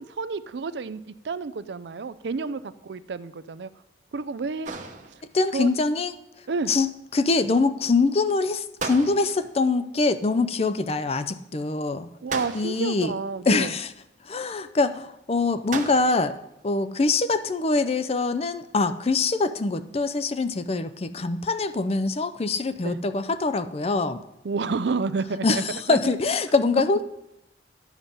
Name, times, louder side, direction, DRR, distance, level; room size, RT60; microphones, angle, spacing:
voice 1, 0.0-3.7 4.1-4.7 5.5-5.7 6.5-6.7 12.2-13.7 22.8-23.0 24.4-25.6 25.9-26.0, right 4 dB, 75° right, 14 dB, 0.5 m, -30 dB
sound 1, 4.6-5.5 8.8-9.6 12.3-13.0 15.7-16.4, right 4 dB, 45° right, 0.9 m, -35 dB
voice 2, 5.3-6.1 6.7-6.9 7.1-12.1 12.5-13.1 13.5-13.9 14.3-16.4 16.6-24.2 25.4-27.0, left 3 dB, 35° left, 12 dB, 0.5 m, -24 dB
11.0 x 7.3 x 5.3 m, 0.88 s
head